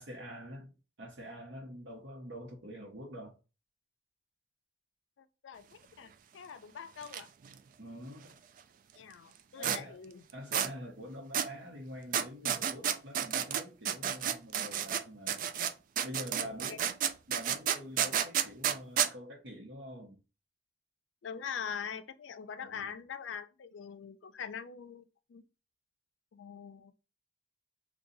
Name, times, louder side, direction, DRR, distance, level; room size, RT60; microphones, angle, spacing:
voice 1, 0.0-3.4 7.8-8.4 9.5-10.0 10.3-15.4 16.0-17.0 17.3-20.2 22.6-22.9, equal, 70° right, 0.9 m, -46 dB
voice 2, 5.2-7.3 9.0-10.2 16.4-16.8 21.2-25.0 25.3-25.4 26.3-26.9, left 7 dB, 85° left, 0.4 m, -43 dB
sound 1, 7.0-7.2 7.4-7.5 9.6-9.8 10.5-10.7 11.3-11.5 12.1-15.0 15.3-19.1, right 9 dB, 50° right, 0.3 m, -31 dB
3.9 x 2.3 x 2.7 m
head